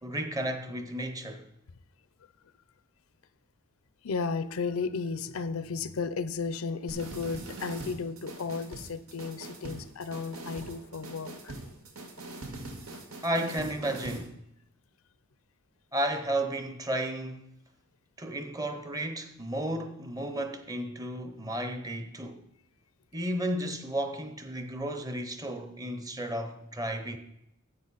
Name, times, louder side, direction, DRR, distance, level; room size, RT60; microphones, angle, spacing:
voice 1, 0.0-1.5 13.2-14.3 15.9-17.5 18.2-22.4 23.1-27.2, right 1 dB, 15° right, 0.8 m, -33 dB
voice 2, 4.0-11.5, left 4 dB, 80° left, 0.6 m, -34 dB
sound 1, 6.9-14.3, right 2 dB, 90° right, 1.6 m, -43 dB
10.5 x 8.0 x 4.1 m
head